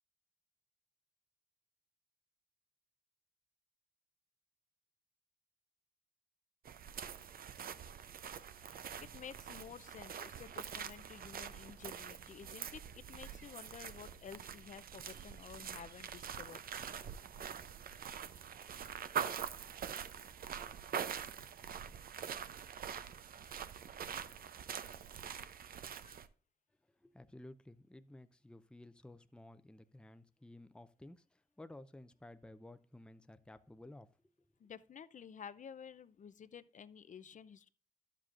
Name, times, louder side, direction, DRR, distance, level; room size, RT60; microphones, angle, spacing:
sound 1, 6.7-26.3, right 8 dB, 65° right, 0.6 m, -45 dB
voice 1, 9.0-16.6 23.5-23.7 25.8-26.2 34.6-37.7, left 7 dB, 50° left, 0.6 m, -52 dB
voice 2, 27.0-34.1, left 1 dB, 5° left, 0.6 m, -55 dB
11.5 x 7.5 x 2.5 m
cardioid pair, 65°, 16 cm